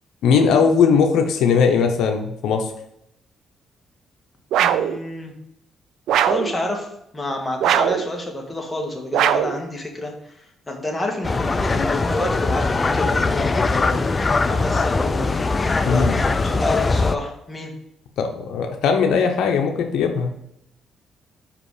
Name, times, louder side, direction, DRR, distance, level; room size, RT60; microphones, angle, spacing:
voice 1, 0.2-2.7 15.8-16.1 18.2-20.3, left 6 dB, 80° left, 4 dB, 0.8 m, -19 dB
sound 1, 4.5-5.0 6.1-6.5 7.6-8.1 9.1-9.6, right 10 dB, 85° right, 0.4 m, -19 dB
voice 2, 4.6-5.3 6.2-6.9 7.1-14.0 14.5-15.4 15.8-17.7, left 1 dB, 15° left, 1 dB, 1.7 m, -29 dB
sound 2, 11.2-17.2, left 3 dB, 30° left, 0.4 m, -21 dB
5.4 x 5.0 x 4.9 m, 0.78 s
cardioid pair, 90°, 0 cm